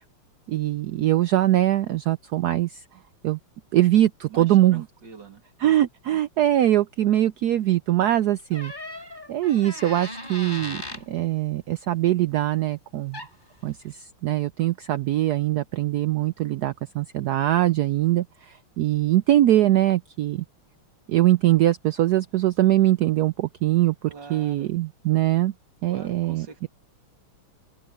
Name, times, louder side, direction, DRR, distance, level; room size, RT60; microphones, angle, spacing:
voice 1, 0.5-2.8 3.2-3.4 3.7-4.8 5.6-8.7 9.3-13.2 13.6-20.4 21.1-25.5 25.8-26.7, right 13 dB, 85° right, 0.8 m, -22 dB
voice 2, 4.3-5.4 24.1-24.7 25.9-26.7, right 6 dB, 55° right, 3.2 m, -43 dB
Door, 8.5-11.1 12.9-13.0 13.1-13.5, left 1 dB, 20° left, 5.8 m, -37 dB
open air
omnidirectional pair, 2.3 m